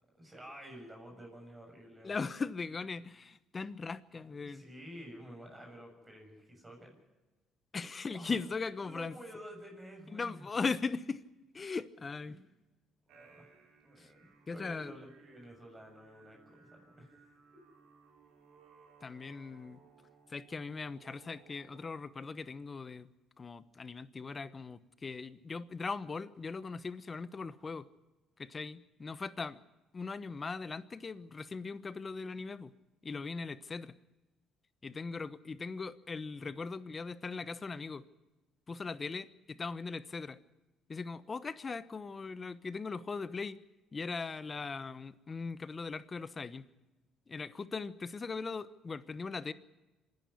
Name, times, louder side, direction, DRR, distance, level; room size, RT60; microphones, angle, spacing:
voice 1, 0.1-2.2 4.4-6.9 8.1-8.4 8.8-10.4 12.3-12.4 13.1-13.5 13.8-17.1, equal, 20° right, 2 dB, 6.9 m, -50 dB
voice 2, 2.0-4.6 7.7-9.2 10.1-11.2 11.5-12.4 14.0-14.1 14.5-15.0 19.0-19.8 20.3-23.1 23.4-27.9 28.4-29.6 29.9-32.7 33.0-33.9 34.8-38.0 38.7-40.4 40.9-43.6 43.9-46.7 47.3-49.5, left 4 dB, 30° left, 15 dB, 1.0 m, -39 dB
sound 1, 13.1-21.9, right 5 dB, 75° right, 4.5 m, -62 dB
26.0 x 11.0 x 9.8 m, 1.1 s
cardioid pair, 90°, 0 cm